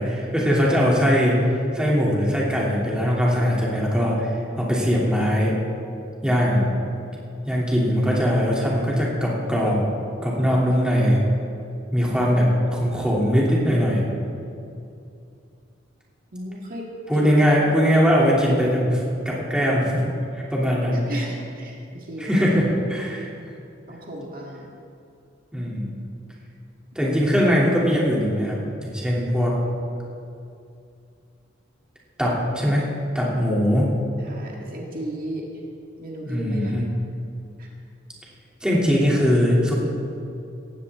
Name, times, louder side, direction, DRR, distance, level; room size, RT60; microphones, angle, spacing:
voice 1, 0.0-1.4 1.7-4.3 4.6-5.6 6.2-6.7 7.4-9.8 10.2-11.2 11.9-14.0 17.1-20.0 20.3-21.0 22.2-23.3 25.5-25.9 26.9-29.6 32.2-32.8 33.1-33.9 36.2-36.9 38.6-39.7, equal, 5° right, -5 dB, 2.9 m, -21 dB
voice 2, 10.5-11.1 16.3-16.9 17.1-17.3 20.9-22.4 23.9-24.7 34.2-35.5 36.0-36.8 37.6-37.7, right 1 dB, 50° right, -2 dB, 1.9 m, -35 dB
17.5 x 15.0 x 3.7 m, 2.5 s
head